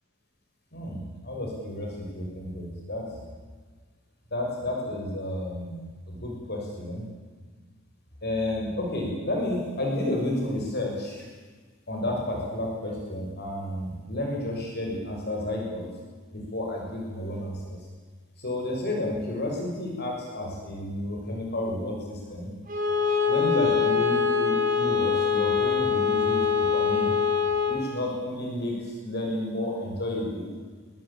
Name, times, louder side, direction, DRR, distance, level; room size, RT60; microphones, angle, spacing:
voice 1, 0.7-3.0 4.3-7.0 8.2-11.3 11.9-15.9 16.3-17.8 18.4-22.5 23.3-27.1 27.7-30.5, left 1 dB, 50° left, 0 dB, 6.6 m, -31 dB
Bowed string instrument, 22.7-27.9, left 6 dB, 40° right, 5.6 m, -24 dB
25.5 x 22.5 x 8.9 m, 1.4 s
head